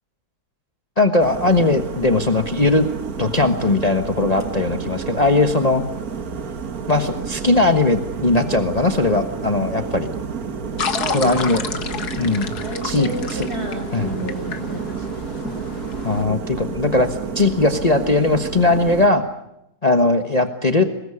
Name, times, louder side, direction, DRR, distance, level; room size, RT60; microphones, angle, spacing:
voice 1, 1.0-2.9 3.2-5.8 6.9-10.1 11.1-11.6 12.2-12.5 12.8-13.5 13.9-14.1 16.0-19.2 19.8-20.8, left 2 dB, 25° left, 7 dB, 1.4 m, -19 dB
sound 1, 1.2-19.1, right 5 dB, 70° right, 2.0 m, -30 dB
voice 2, 10.7-11.3 11.7-12.0 12.6-15.8, right 1 dB, 40° right, 5 dB, 5.5 m, -32 dB
sound 2, 10.8-16.2, left 6 dB, 80° left, 2.2 m, -31 dB
24.5 x 20.0 x 9.9 m, 0.82 s
omnidirectional pair, 1.6 m